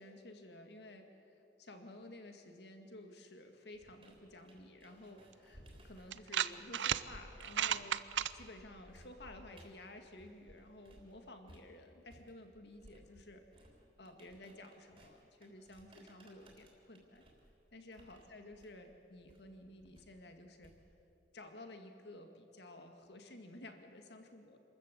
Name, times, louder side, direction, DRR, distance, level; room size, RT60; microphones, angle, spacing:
voice 1, 0.0-13.4 14.0-17.2 17.7-20.7 21.3-24.6, left 1 dB, 65° left, 5 dB, 2.1 m, -53 dB
sound 1, 3.7-11.1 11.5-21.1, equal, 30° right, 3.7 m, -61 dB
sound 2, 5.3-5.4 6.1-7.0 7.4-8.3, right 10 dB, 85° right, 0.6 m, -34 dB
27.0 x 14.0 x 8.4 m, 2.9 s
head